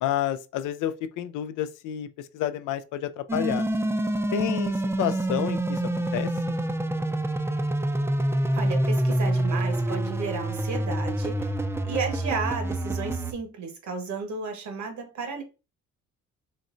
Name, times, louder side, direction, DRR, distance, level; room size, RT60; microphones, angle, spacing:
voice 1, 0.0-3.7 4.3-5.8 6.1-6.3, left 11 dB, 85° left, 0.5 m, -30 dB
sound 1, 3.3-13.3, right 1 dB, 10° right, 0.4 m, -27 dB
voice 2, 8.5-11.5 11.8-15.4, right 4 dB, 70° right, 1.3 m, -33 dB
4.1 x 3.1 x 2.5 m
cardioid pair, 90°, 30 cm